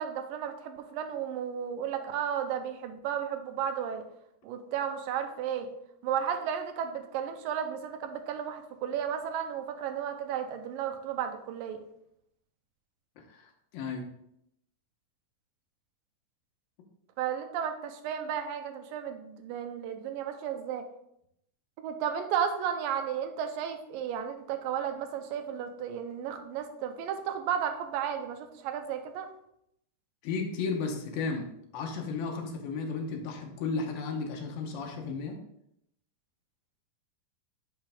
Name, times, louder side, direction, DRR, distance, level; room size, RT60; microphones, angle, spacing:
voice 1, 0.0-4.0 4.4-5.7 6.0-11.8 17.2-20.8 21.8-29.3, right 8 dB, 85° right, 6 dB, 2.4 m, -33 dB
voice 2, 13.2-14.1 30.2-31.5 31.7-35.4, left 4 dB, 85° left, 2 dB, 2.8 m, -34 dB
9.2 x 4.6 x 3.4 m, 0.76 s
omnidirectional pair, 4.0 m